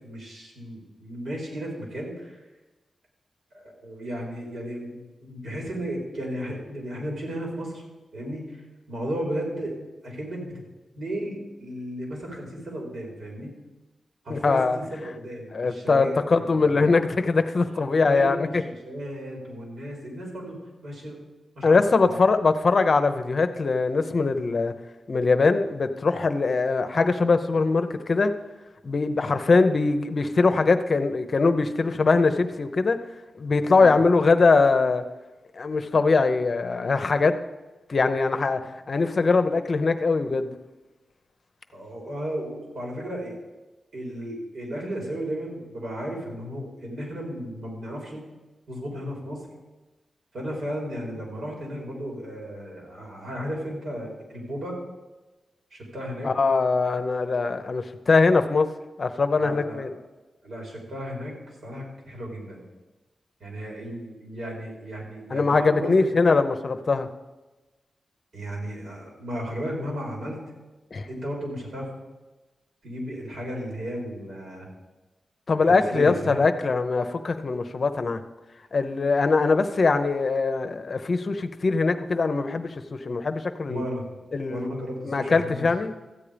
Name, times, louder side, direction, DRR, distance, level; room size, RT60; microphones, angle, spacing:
voice 1, 0.0-2.4 3.5-7.8 8.1-8.6 8.9-9.8 10.0-10.6 11.0-13.5 14.2-16.8 17.7-20.6 20.8-21.2 21.6-21.8 22.0-22.2 33.7-34.0 41.7-43.4 43.9-48.2 48.7-49.4 50.3-54.8 55.7-56.3 59.4-59.9 60.4-62.6 63.4-66.0 68.3-70.4 71.1-71.9 72.8-74.7 75.7-76.5 83.7-84.0 84.4-85.7, equal, 70° right, -1 dB, 4.3 m, -34 dB
voice 2, 14.3-14.8 15.5-18.6 21.6-24.7 25.1-28.3 28.8-33.0 33.4-35.0 35.5-37.3 37.9-38.6 38.9-40.6 56.2-58.7 59.0-59.9 65.3-67.1 70.9-71.1 75.5-78.2 78.7-83.8 84.3-84.7 85.0-85.9, left 4 dB, 45° left, 8 dB, 0.8 m, -22 dB
14.0 x 8.6 x 5.1 m, 1.1 s
wide cardioid pair, 100°, 0 cm